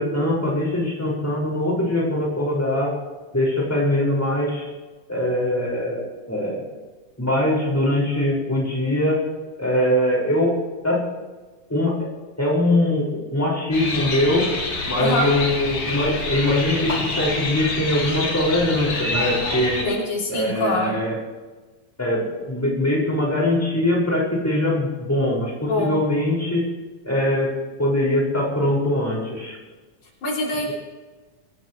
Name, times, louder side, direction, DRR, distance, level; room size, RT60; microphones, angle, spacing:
voice 1, 0.0-2.9 3.3-4.7 5.1-6.0 6.3-6.6 7.2-9.2 9.6-10.5 10.8-11.0 11.7-12.1 12.4-14.5 14.9-19.8 20.3-21.2 22.0-26.6 27.0-27.5 27.8-29.6, left 1 dB, 5° left, -4 dB, 5.8 m, -22 dB
sound 1, 13.7-19.9, left 2 dB, 45° left, 3.2 m, -27 dB
voice 2, 19.8-21.0 25.6-26.0 30.2-30.7, left 1 dB, 85° left, -3 dB, 5.0 m, -24 dB
25.5 x 16.0 x 3.3 m, 1.3 s
omnidirectional pair, 3.3 m